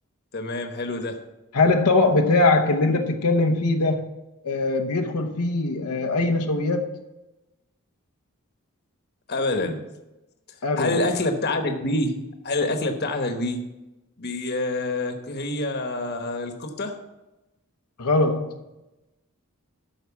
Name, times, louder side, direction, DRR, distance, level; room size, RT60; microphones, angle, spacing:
voice 1, 0.3-1.2 9.3-9.8 10.8-12.1 12.4-13.6 14.2-17.0, left 2 dB, 45° left, 1.1 m, -26 dB
voice 2, 1.5-4.1 4.4-7.0 10.6-11.0 18.0-18.5, left 2 dB, 85° left, 0.9 m, -21 dB
12.0 x 4.6 x 7.0 m
head